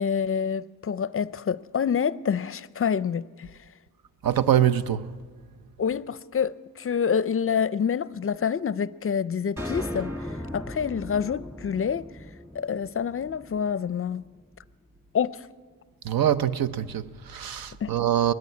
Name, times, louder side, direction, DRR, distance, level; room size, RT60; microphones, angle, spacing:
voice 1, 0.0-3.5 5.8-10.1 10.5-12.1 12.5-14.2 15.1-15.5 17.8-17.9, left 7 dB, 40° left, 0.5 m, -27 dB
voice 2, 4.2-5.1 16.0-18.3, right 10 dB, 80° right, 0.8 m, -24 dB
sound 1, 9.6-14.0, left 1 dB, 5° right, 1.8 m, -37 dB
20.5 x 13.5 x 9.6 m
cardioid pair, 95°, 34 cm